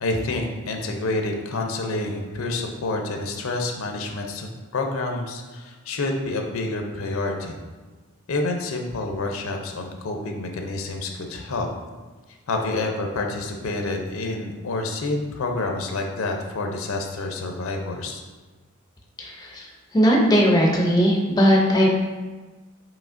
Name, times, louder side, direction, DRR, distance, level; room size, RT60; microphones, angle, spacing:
voice 1, 0.0-7.5 8.3-11.7 12.5-18.2, left 2 dB, 75° left, 3 dB, 0.5 m, -28 dB
voice 2, 19.2-19.7 19.9-21.9, equal, 20° left, 0 dB, 0.4 m, -18 dB
4.9 x 3.0 x 2.5 m, 1.3 s
head